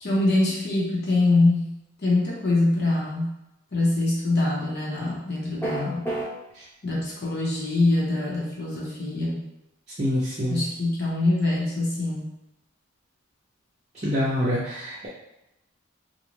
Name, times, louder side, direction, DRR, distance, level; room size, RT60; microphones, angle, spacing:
voice 1, 0.0-1.7 2.0-3.3 3.7-6.0 6.8-9.4 10.5-12.3, left 2 dB, 50° left, -4 dB, 0.9 m, -24 dB
sound 1, 5.6-6.3, right 2 dB, 10° left, 0.9 m, -27 dB
voice 2, 10.0-10.6 14.0-15.1, equal, 35° right, -10 dB, 0.6 m, -25 dB
2.6 x 2.3 x 3.1 m, 0.91 s
head